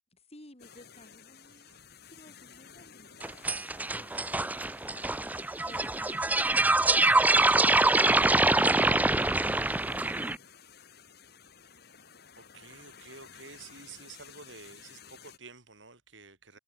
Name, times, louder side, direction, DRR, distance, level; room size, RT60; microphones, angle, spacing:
voice 1, 0.1-1.7 2.1-8.5 9.0-10.5, left 1 dB, 35° left, 3.4 m, -56 dB
sound 1, 0.6-15.4, left 7 dB, 60° left, 3.1 m, -54 dB
voice 2, 1.5-1.8 12.3-16.6, right 4 dB, 75° right, 6.1 m, -50 dB
sound 2, 3.2-10.4, right 2 dB, 10° right, 0.5 m, -25 dB
head